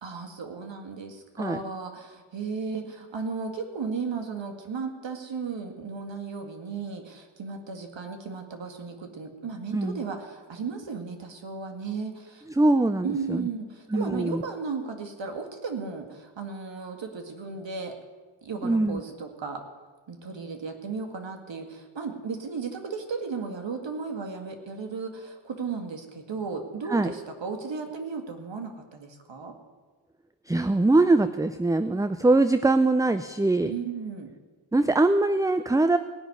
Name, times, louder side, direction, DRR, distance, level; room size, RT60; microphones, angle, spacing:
voice 1, 0.0-12.5 13.0-17.9 18.4-19.6 20.1-29.6 33.6-34.3, right 5 dB, 60° right, 5 dB, 2.0 m, -35 dB
voice 2, 9.7-10.0 12.6-13.5 13.9-14.4 18.6-19.0 26.9-27.1 30.5-33.7 34.7-36.0, right 2 dB, 5° right, 11 dB, 0.4 m, -22 dB
18.5 x 6.1 x 9.6 m, 1.4 s
cardioid pair, 65°, 49 cm